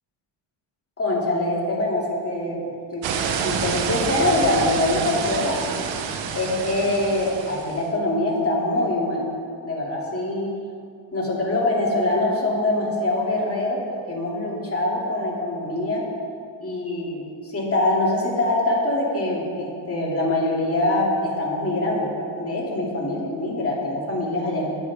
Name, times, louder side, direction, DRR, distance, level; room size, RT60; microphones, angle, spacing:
voice 1, 1.0-5.6 6.3-9.2 9.6-10.5 11.1-16.0 16.6-24.8, left 2 dB, 30° left, -4 dB, 2.7 m, -24 dB
sound 1, 3.0-7.8, right 6 dB, 70° right, 0.9 m, -28 dB
20.0 x 7.2 x 3.6 m, 2.3 s
cardioid pair, 125°, 46 cm